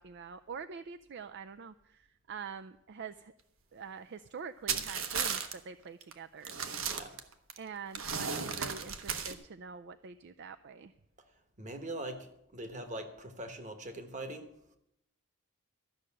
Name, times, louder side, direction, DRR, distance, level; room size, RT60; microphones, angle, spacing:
voice 1, 0.0-3.3 3.7-6.5 7.6-10.9, right 6 dB, 55° right, 10 dB, 0.4 m, -45 dB
sound 1, 4.7-5.5 6.0-6.1 6.4-7.6 7.9-9.3, right 6 dB, 70° right, 1.2 m, -35 dB
voice 2, 11.6-14.5, right 1 dB, 35° right, 7 dB, 1.3 m, -42 dB
13.5 x 6.5 x 8.7 m, 0.80 s
head